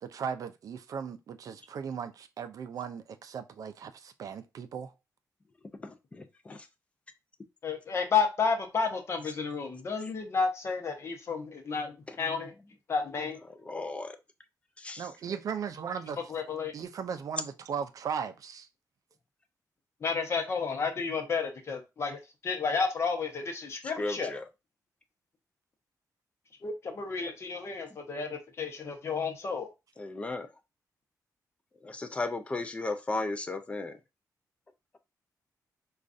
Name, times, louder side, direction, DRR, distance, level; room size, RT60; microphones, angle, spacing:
voice 1, 0.0-4.9 15.0-16.2 16.7-18.7, right 7 dB, 60° right, 0.4 m, -37 dB
voice 2, 5.8-6.6 13.7-14.2 14.8-15.1 24.0-24.4 30.0-30.5 31.8-34.0, left 2 dB, 20° left, 0.4 m, -35 dB
voice 3, 7.6-12.5 12.9-13.4 16.3-16.7 20.0-24.3 26.6-29.7, left 5 dB, 40° left, 0.8 m, -31 dB
5.0 x 2.3 x 2.5 m
wide cardioid pair, 165°, 7 cm